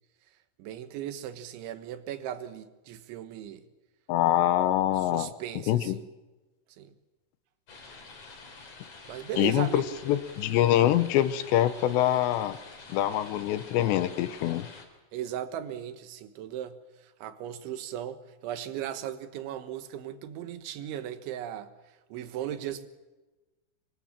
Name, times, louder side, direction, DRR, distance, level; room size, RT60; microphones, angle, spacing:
voice 1, 0.6-3.6 5.0-6.1 6.7-6.9 9.1-10.0 15.1-21.7 22.1-22.9, right 11 dB, 90° right, 3.8 m, -37 dB
voice 2, 4.1-5.3 5.7-6.0 9.4-12.6 12.9-14.7, left 12 dB, 75° left, 3.0 m, -25 dB
sound 1, 7.7-14.9, left 4 dB, 40° left, 4.6 m, -48 dB
25.0 x 24.5 x 7.5 m
omnidirectional pair, 5.2 m